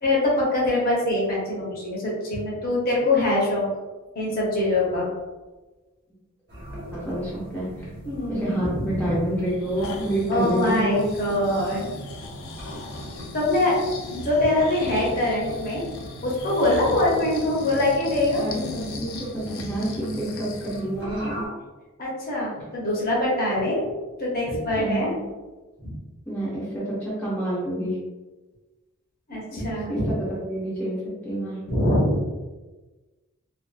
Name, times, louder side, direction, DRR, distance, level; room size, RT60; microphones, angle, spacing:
voice 1, 0.0-3.7 4.1-5.1 8.1-9.2 10.3-11.8 13.3-13.8 14.1-15.8 16.2-18.7 22.0-23.9 24.2-25.1 25.8-26.0 29.3-30.1 31.7-32.2, left 1 dB, 40° left, -5 dB, 0.7 m, -23 dB
sound 1, 6.5-21.5, right 1 dB, 55° right, 0.9 m, -40 dB
voice 2, 6.9-7.7 8.3-11.0 18.4-21.4 24.8-25.2 26.3-27.9 29.5-29.6 29.9-30.0 30.3-31.0 31.2-31.6, right 1 dB, 5° left, -9 dB, 0.6 m, -28 dB
Breathing, 9.5-20.9 21.3-21.4, left 3 dB, 60° left, 0.4 m, -39 dB
2.6 x 2.3 x 2.3 m, 1.2 s
head